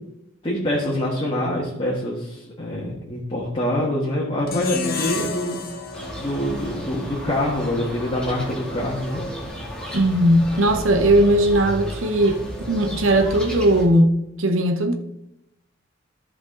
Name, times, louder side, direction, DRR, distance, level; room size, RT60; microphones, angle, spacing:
voice 1, 0.4-5.6 6.2-9.2, left 1 dB, 25° left, 1.5 m, -25 dB
sound 1, 4.5-7.7, left 3 dB, 50° left, 1.3 m, -31 dB
sound 2, 5.9-13.9, equal, 5° left, 1.7 m, -33 dB
voice 2, 9.9-12.4 12.7-14.9, right 1 dB, 80° right, 0.9 m, -18 dB
13.5 x 5.1 x 3.8 m
head